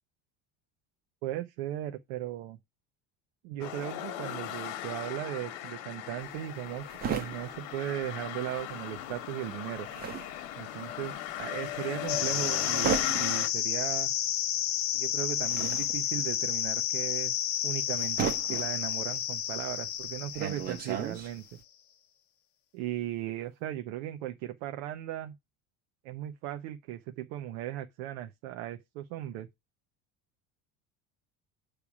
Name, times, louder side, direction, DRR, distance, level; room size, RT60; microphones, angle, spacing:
voice 1, 1.2-2.6 3.4-6.9 7.1-9.9 10.6-11.1 11.4-14.1 14.9-17.3 17.6-21.4 22.7-25.3 26.0-29.5, right 13 dB, 75° right, 0.9 m, -37 dB
sound 1, 3.6-13.5, left 12 dB, 60° left, 1.2 m, -38 dB
sound 2, 6.2-8.7 9.0-21.6, right 7 dB, 25° right, 0.8 m, -37 dB
sound 3, 12.1-21.2, left 10 dB, 40° left, 0.8 m, -31 dB
8.4 x 3.4 x 5.9 m
cardioid pair, 180°, 34 cm